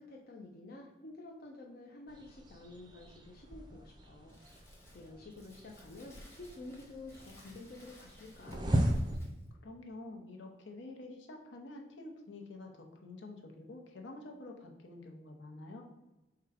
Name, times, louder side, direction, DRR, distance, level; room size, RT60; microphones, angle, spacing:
voice 1, 0.0-4.4 4.9-8.6, left 2 dB, 50° left, -1 dB, 0.5 m, -50 dB
sound 1, 2.1-9.2, right 1 dB, 20° right, 0.5 m, -38 dB
Crumpling crinkling, 4.3-9.5, left 1 dB, 15° left, 1.0 m, -60 dB
voice 2, 9.6-15.8, left 2 dB, 75° left, 1 dB, 0.8 m, -48 dB
4.7 x 2.3 x 4.8 m, 1.0 s
head